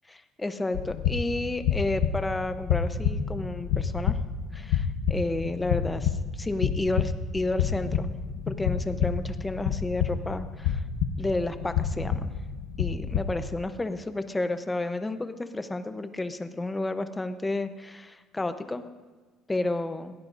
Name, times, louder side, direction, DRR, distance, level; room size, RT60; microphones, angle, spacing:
voice 1, 0.4-4.2 4.5-8.1 8.5-10.8 11.2-12.3 12.8-18.8 19.5-20.1, left 2 dB, 10° left, 9 dB, 0.8 m, -31 dB
sound 1, 0.7-13.6, left 7 dB, 90° left, 1.0 m, -29 dB
22.5 x 16.5 x 2.6 m, 1.4 s
cardioid pair, 150°, 0 cm